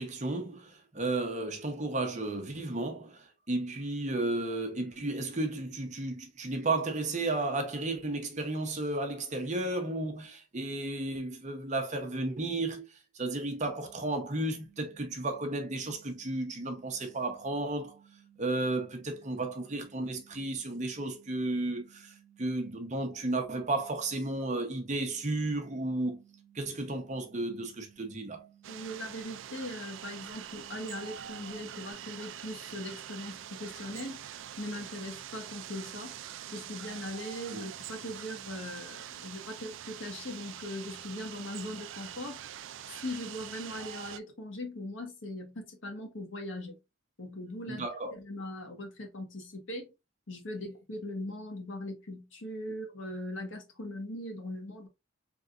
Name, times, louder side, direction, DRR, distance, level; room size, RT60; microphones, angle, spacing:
voice 1, 0.0-18.0 18.4-26.2 26.5-28.5 37.5-37.6 47.7-48.1, right 2 dB, 35° right, 0.8 m, -33 dB
sound 1, 13.4-31.9, right 10 dB, ahead, 2.5 m, -61 dB
sound 2, 28.6-44.2, right 10 dB, 65° right, 0.3 m, -44 dB
voice 2, 28.7-34.2 34.6-36.2 36.5-42.4 43.0-46.8 47.2-47.9 48.1-49.9 50.3-54.9, left 1 dB, 65° left, 1.3 m, -40 dB
4.0 x 3.4 x 2.5 m
head